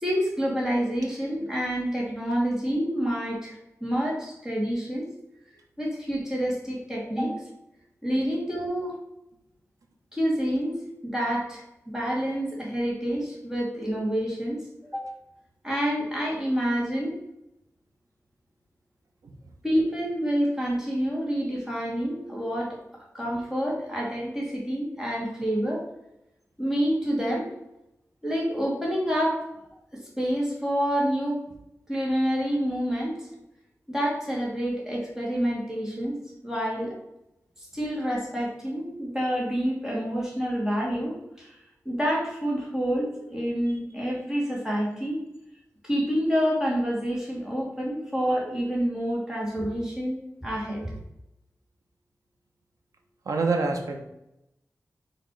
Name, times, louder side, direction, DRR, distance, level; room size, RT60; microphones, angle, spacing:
voice 1, 0.0-5.0 5.8-7.4 8.0-9.0 10.1-14.6 14.9-15.1 15.6-17.2 19.6-22.8 23.1-25.8 26.6-27.5 28.2-29.4 29.9-31.4 31.9-33.3 33.9-36.2 36.4-36.9 37.6-41.6 41.9-45.2 45.8-50.9, equal, 10° right, -4 dB, 2.2 m, -28 dB
voice 2, 53.2-54.0, right 3 dB, 90° right, 3 dB, 1.0 m, -26 dB
6.0 x 3.3 x 4.7 m, 0.87 s
wide cardioid pair, 100°, 6 cm